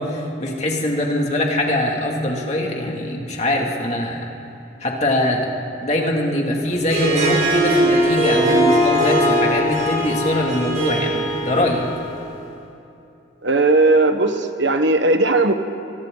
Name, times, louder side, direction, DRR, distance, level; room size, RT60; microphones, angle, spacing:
voice 1, 0.0-4.3 4.8-5.5 5.8-11.8, left 1 dB, 35° left, -1 dB, 2.7 m, -22 dB
Harp, 6.8-12.2, right 1 dB, 40° right, 6.9 m, -20 dB
voice 2, 13.4-15.5, right 2 dB, 70° right, 7 dB, 1.3 m, -17 dB
29.0 x 24.5 x 4.0 m, 2.9 s
head